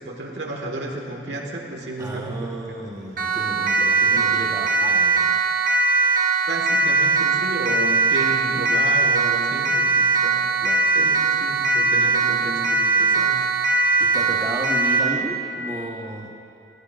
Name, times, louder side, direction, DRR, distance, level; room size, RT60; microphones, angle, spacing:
voice 1, 0.0-2.6 6.5-10.5 10.9-13.5, right 1 dB, 75° right, 0 dB, 1.5 m, -32 dB
voice 2, 2.0-5.4 10.6-10.9 14.0-16.3, right 1 dB, 20° right, -2 dB, 1.2 m, -33 dB
Siren, 3.2-15.1, right 4 dB, 50° right, 1.0 m, -20 dB
20.0 x 15.0 x 2.5 m, 2.5 s
head